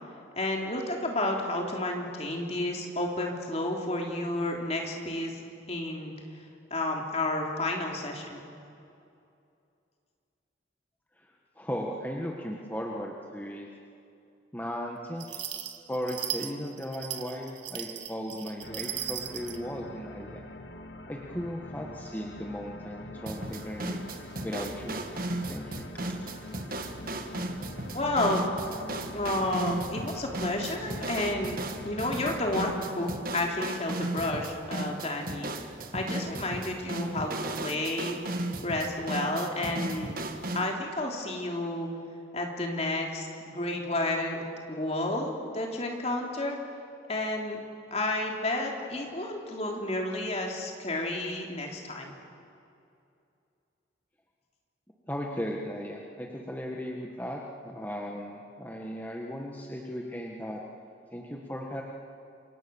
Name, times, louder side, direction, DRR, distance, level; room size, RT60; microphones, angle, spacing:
voice 1, 0.3-5.3 5.7-6.1 6.7-8.4 27.9-28.4 29.1-31.6 31.8-35.5 35.9-38.2 38.6-40.2 40.5-41.9 42.3-46.6 47.1-47.6 47.9-52.1, left 1 dB, 35° left, 1 dB, 3.4 m, -31 dB
voice 2, 11.6-13.7 14.5-20.4 21.1-24.0 24.4-25.1 25.5-25.9 55.1-60.6 61.1-61.8, equal, 10° left, -1 dB, 1.6 m, -36 dB
sound 1, 15.2-19.6, right 11 dB, 80° right, 1.8 m, -37 dB
sound 2, 18.6-32.9, left 1 dB, 70° left, 1.9 m, -44 dB
sound 3, 23.3-40.7, right 2 dB, 45° right, 1.6 m, -35 dB
28.5 x 24.5 x 7.1 m, 2.6 s
head